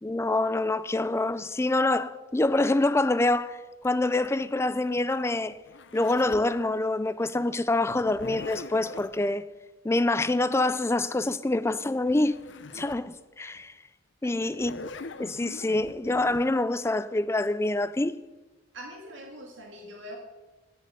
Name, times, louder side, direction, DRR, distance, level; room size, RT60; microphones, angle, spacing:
voice 1, 0.0-5.5 5.9-9.5 9.8-12.4 12.7-13.7 14.2-14.7 15.2-18.2, left 2 dB, 15° left, 0.4 m, -26 dB
Zipper (clothing), 3.8-6.5 7.9-9.2 11.7-11.8 12.1-13.1 13.6-13.7 14.4-16.4, left 3 dB, 60° left, 0.7 m, -42 dB
voice 2, 14.2-14.6 18.7-20.2, equal, 65° right, 1.8 m, -43 dB
10.0 x 7.9 x 7.9 m
head